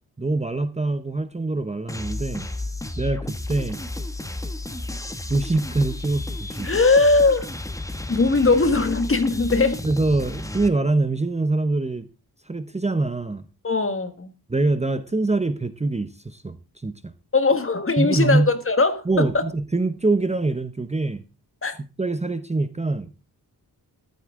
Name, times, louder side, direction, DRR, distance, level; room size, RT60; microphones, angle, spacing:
voice 1, 0.2-2.5 3.0-3.8 5.3-6.7 9.8-12.1 12.5-13.4 14.5-17.1 18.0-18.5 19.1-21.2 22.0-23.1, right 2 dB, 15° right, 0.8 m, -24 dB
sound 1, 1.9-10.7, left 2 dB, 10° left, 1.1 m, -32 dB
voice 2, 6.6-7.5 8.1-9.8 13.6-14.3 17.3-19.4 21.6-21.7, left 3 dB, 35° left, 1.6 m, -20 dB
14.0 x 12.0 x 3.7 m
wide cardioid pair, 160°, 38 cm